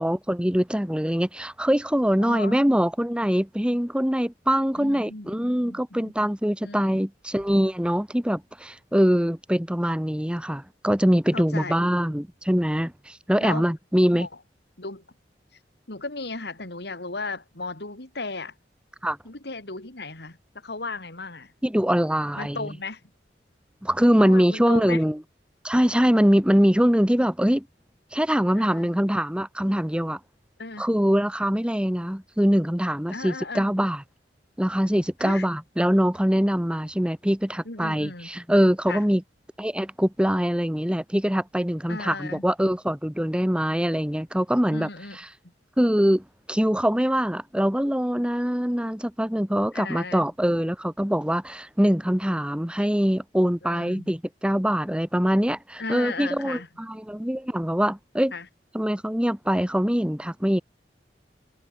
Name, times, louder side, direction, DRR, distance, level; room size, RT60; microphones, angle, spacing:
voice 1, 0.0-14.3 19.0-19.2 21.6-22.7 23.8-25.2 25.6-27.7 28.1-30.2 30.8-34.0 34.6-39.2 39.6-44.9 45.8-58.3 58.7-60.6, equal, 5° right, 1.3 m, -23 dB
voice 2, 2.2-2.6 4.8-6.1 6.6-7.0 11.3-11.9 13.4-13.7 14.1-14.3 14.8-15.0 15.9-18.5 19.2-20.4 20.6-21.5 22.4-23.0 24.2-25.0 28.5-28.9 30.6-30.9 33.1-33.7 35.2-35.5 37.6-38.3 38.9-39.0 41.9-42.4 44.7-45.2 49.7-50.2 53.6-54.1 55.8-56.7 58.3-58.5, left 3 dB, 65° left, 3.4 m, -35 dB
head